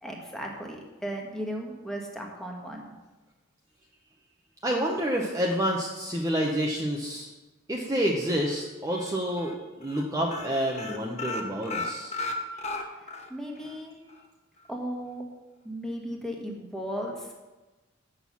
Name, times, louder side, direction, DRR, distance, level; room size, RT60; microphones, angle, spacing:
voice 1, 0.0-2.9 13.0-14.0 14.7-15.2 15.6-17.3, equal, ahead, 0 dB, 1.3 m, -36 dB
voice 2, 4.6-7.3 7.7-12.1, equal, 15° right, -2 dB, 0.8 m, -28 dB
sound 1, 8.4-9.0 9.4-9.6 9.8-10.0 10.3-13.3 13.6-13.7 14.1-14.2, left 3 dB, 35° left, 0.9 m, -34 dB
7.7 x 6.3 x 7.1 m, 1.2 s
head